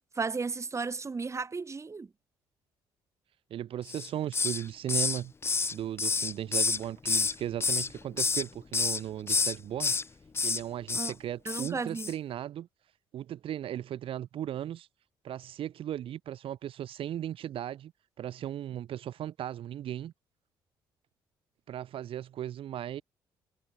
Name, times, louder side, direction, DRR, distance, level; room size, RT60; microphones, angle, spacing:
voice 1, 0.2-2.1 10.9-11.1 11.5-12.1, right 4 dB, 30° right, 2.1 m, -34 dB
voice 2, 3.5-5.3 5.7-10.0 10.4-12.7 13.1-14.9 15.2-17.9 18.2-20.1 21.7-23.0, right 11 dB, 65° right, 3.0 m, -36 dB
Hiss, 3.9-4.6 4.9-7.3 7.6-8.4 8.7-9.0 9.3-10.0 10.3-10.6 10.9-11.1 11.5-11.7 12.0-12.1, left 4 dB, 25° left, 0.5 m, -28 dB
supercardioid pair, 70°, 10 cm